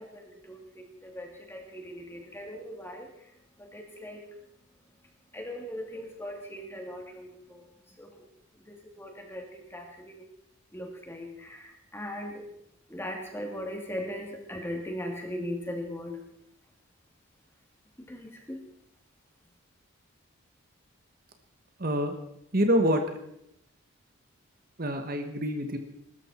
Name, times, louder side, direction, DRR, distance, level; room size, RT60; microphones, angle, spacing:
voice 1, 0.0-8.3 8.7-10.2 10.7-12.4 12.9-16.2 18.0-18.6, equal, 10° left, 1 dB, 2.7 m, -40 dB
voice 2, 21.8-22.2 22.5-23.0 24.8-25.8, equal, 40° right, 6 dB, 1.3 m, -26 dB
21.5 x 13.0 x 4.4 m, 0.78 s
head